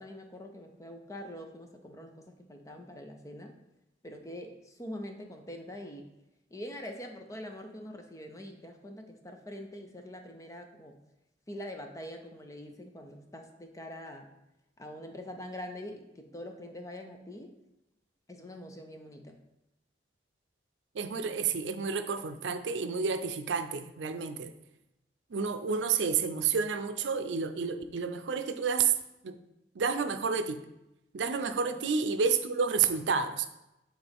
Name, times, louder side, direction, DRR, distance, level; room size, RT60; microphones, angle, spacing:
voice 1, 0.0-3.6 4.0-6.1 6.5-11.0 11.5-14.3 14.8-17.6 18.3-19.4, left 1 dB, 20° left, 4 dB, 0.6 m, -44 dB
voice 2, 20.9-24.5 25.3-28.9 29.2-29.4 29.8-30.6 31.1-33.5, right 5 dB, 90° right, 9 dB, 0.5 m, -30 dB
8.4 x 3.8 x 3.5 m, 0.90 s
head